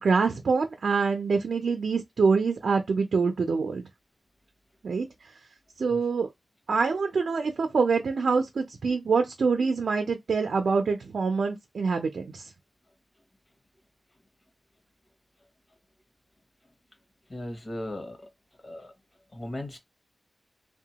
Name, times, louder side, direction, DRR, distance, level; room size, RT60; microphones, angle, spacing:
voice 1, 0.0-3.9 4.8-5.3 5.8-6.3 6.7-12.5, right 4 dB, 90° right, 0.4 m, -25 dB
voice 2, 17.3-18.2 18.6-18.9 19.3-19.8, left 1 dB, 40° left, 0.7 m, -37 dB
2.8 x 2.1 x 2.8 m
wide cardioid pair, 95°, 0 cm